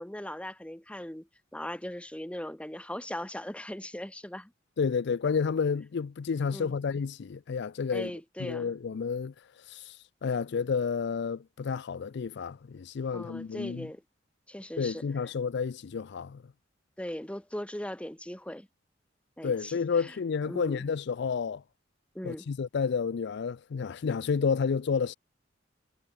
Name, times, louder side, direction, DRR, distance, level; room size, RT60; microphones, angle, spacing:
voice 1, 0.0-4.5 6.5-6.7 7.9-8.7 13.1-14.0 14.5-15.0 17.0-18.7 19.4-19.7 20.0-20.1 20.5-20.8 22.1-22.5, left 1 dB, 5° left, 1.3 m, -39 dB
voice 2, 4.8-8.1 8.4-9.3 9.7-13.9 14.8-16.4 19.4-21.6 22.2-25.1, left 5 dB, 65° left, 0.4 m, -30 dB
head